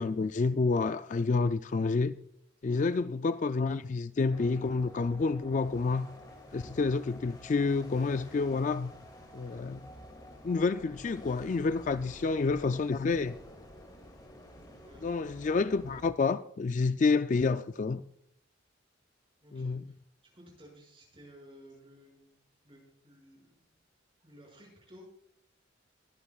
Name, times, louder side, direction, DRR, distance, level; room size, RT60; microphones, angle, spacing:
voice 1, 0.0-2.1 2.6-6.1 6.5-8.9 9.3-9.8 10.4-13.4 15.0-18.0 19.5-19.8, left 4 dB, 40° left, 0.3 m, -29 dB
voice 2, 2.6-2.9 11.9-12.1 14.8-15.1 19.4-20.0 20.3-22.4 22.6-23.8 24.2-25.1, equal, 25° right, 6.2 m, -55 dB
sound 1, 4.3-16.1, equal, 20° left, 2.3 m, -50 dB
22.5 x 11.0 x 2.4 m
head